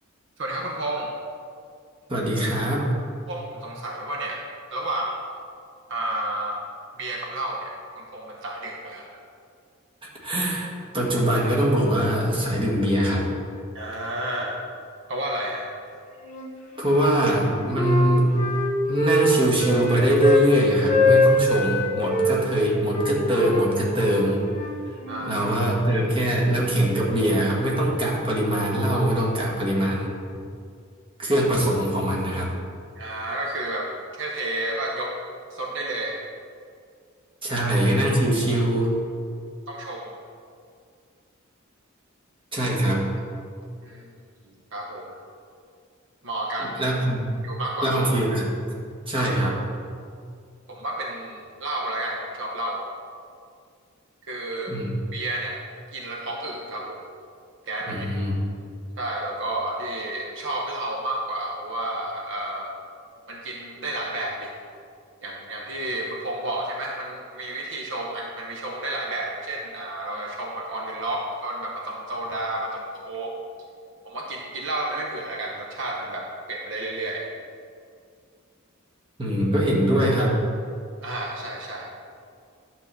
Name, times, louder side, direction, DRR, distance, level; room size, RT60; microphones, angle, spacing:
voice 1, 0.4-1.1 3.3-4.5 4.7-5.3 5.9-6.7 7.0-9.2 13.7-14.6 15.1-15.7 25.1-25.4 33.0-33.9 34.2-35.1 35.5-36.2 37.5-37.6 39.7-40.2 43.8-44.1 44.5-45.2 46.2-46.8 47.4-48.0 49.1-49.3 50.7-52.8 54.2-54.8 55.1-55.6 55.9-57.1 57.7-58.1 59.0-62.7 63.3-64.5 65.2-73.3 74.0-77.2 81.0-81.9, right 1 dB, 60° right, -1 dB, 0.9 m, -31 dB
voice 2, 2.1-3.0 10.2-13.3 16.8-18.4 18.9-24.4 25.2-30.1 31.2-32.5 37.4-38.9 42.5-43.1 46.6-47.3 47.8-48.4 49.1-49.5 54.7-54.9 57.9-58.3 79.2-80.4, right 1 dB, 25° right, -4 dB, 1.7 m, -22 dB
Wind instrument woodwind instrument, 16.2-17.1 17.4-20.5 20.8-22.3 22.9-25.4, left 2 dB, 35° left, 1.3 m, -24 dB
11.0 x 3.8 x 6.9 m, 2.3 s
head